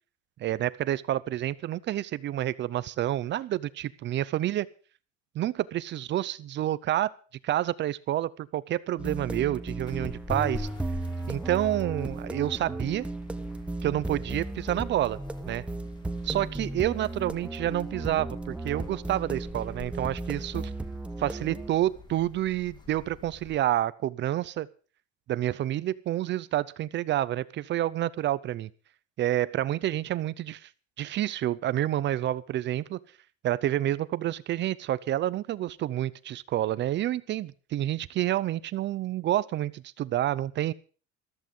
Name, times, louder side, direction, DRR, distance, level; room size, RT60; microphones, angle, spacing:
voice 1, 0.4-4.7 5.3-7.1 7.4-10.7 11.3-13.1 13.8-15.2 15.5-15.6 16.2-20.7 21.2-24.7 25.3-28.7 29.2-30.7 31.0-33.0 33.4-40.7, right 13 dB, 40° right, 18 dB, 0.6 m, -29 dB
sound 1, 9.0-21.7, right 2 dB, 5° right, 0.7 m, -35 dB
sound 2, 9.8-23.6, left 3 dB, 15° left, 1.7 m, -47 dB
14.0 x 14.0 x 5.4 m, 0.38 s
cardioid pair, 175°, 30 cm